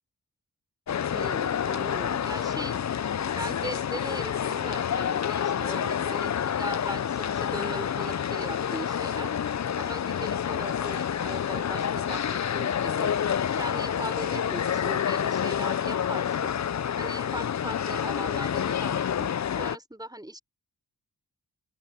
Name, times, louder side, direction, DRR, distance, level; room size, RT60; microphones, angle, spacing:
sound 1, 0.9-19.8, left 8 dB, 40° left, 0.5 m, -28 dB
voice 1, 1.1-2.8 3.4-9.3 9.7-13.1 13.5-16.5 17.0-19.3 19.6-20.4, right 1 dB, 10° right, 4.4 m, -39 dB
open air
cardioid pair, 45°, 42 cm